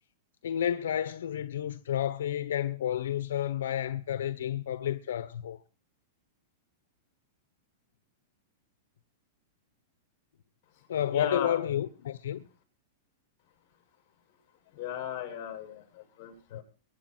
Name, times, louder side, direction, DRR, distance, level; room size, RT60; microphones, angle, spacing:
voice 1, 0.4-5.6 10.9-12.4 16.5-16.6, left 10 dB, 85° left, 1.1 m, -31 dB
voice 2, 11.1-11.6 14.7-16.6, left 9 dB, 40° left, 7.1 m, -36 dB
23.5 x 9.4 x 4.5 m
supercardioid pair, 155°, 0 cm